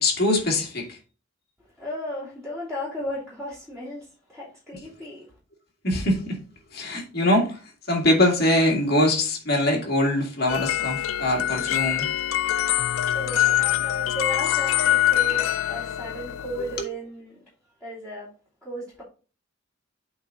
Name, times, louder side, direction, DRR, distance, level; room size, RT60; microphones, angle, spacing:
voice 1, 0.0-1.0 5.8-6.4 6.7-7.6 7.9-12.1 16.8-16.9, left 1 dB, 55° left, 2.2 m, -23 dB
voice 2, 1.8-5.3 13.1-17.4 17.8-18.3 18.6-19.0, equal, 5° left, 3.0 m, -35 dB
sound 1, 10.5-16.8, left 13 dB, 90° left, 0.3 m, -24 dB
8.5 x 3.9 x 3.9 m
head